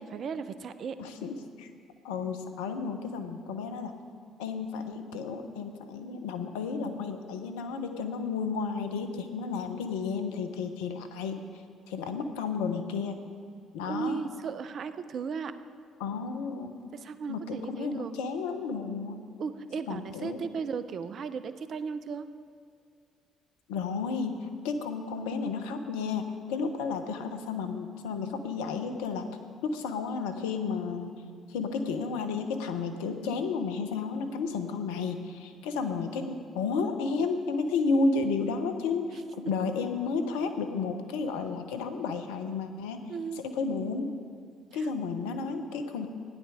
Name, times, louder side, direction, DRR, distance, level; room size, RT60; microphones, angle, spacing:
voice 1, 0.1-1.0 13.9-15.5 16.9-18.1 19.4-22.2 43.1-43.4 44.8-44.9, right 6 dB, 55° right, 12 dB, 0.7 m, -35 dB
voice 2, 1.0-1.7 2.0-3.9 4.4-11.4 11.9-13.2 13.7-14.2 16.0-16.9 17.3-19.2 19.9-20.4 23.7-24.4 24.6-29.3 29.6-31.1 31.5-43.0 43.4-44.1 44.7-46.1, left 4 dB, 75° left, 7 dB, 0.9 m, -32 dB
15.5 x 10.0 x 4.9 m, 2.2 s
hypercardioid pair, 50°, 0 cm